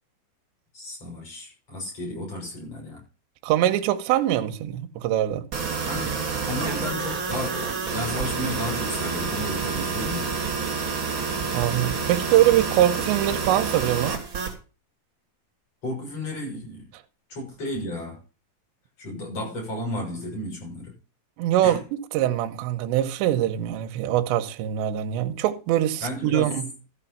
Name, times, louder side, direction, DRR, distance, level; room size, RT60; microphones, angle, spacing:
voice 1, 0.7-3.0 5.8-10.4 15.8-16.9 17.3-18.2 19.0-20.9 21.6-21.8 26.0-26.5, left 1 dB, 30° left, 7.6 m, -33 dB
voice 2, 3.4-5.5 11.5-14.2 21.4-21.8 22.1-26.6, right 12 dB, 75° right, 2.8 m, -23 dB
sound 1, 5.5-14.5, right 5 dB, 40° right, 1.7 m, -28 dB
14.0 x 6.5 x 5.6 m
omnidirectional pair, 5.9 m